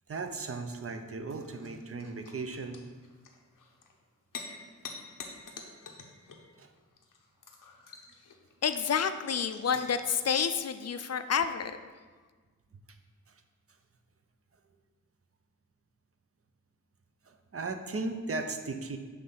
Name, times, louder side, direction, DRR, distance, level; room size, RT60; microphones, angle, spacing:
voice 1, 0.1-2.8 6.6-6.7 17.3-19.0, right 3 dB, 45° right, 7 dB, 0.6 m, -36 dB
sound 1, 1.3-10.2, left 4 dB, 90° left, 0.7 m, -48 dB
voice 2, 8.6-11.8, left 7 dB, 55° left, 10 dB, 0.4 m, -29 dB
6.0 x 3.2 x 5.4 m, 1.4 s
wide cardioid pair, 60°, 31 cm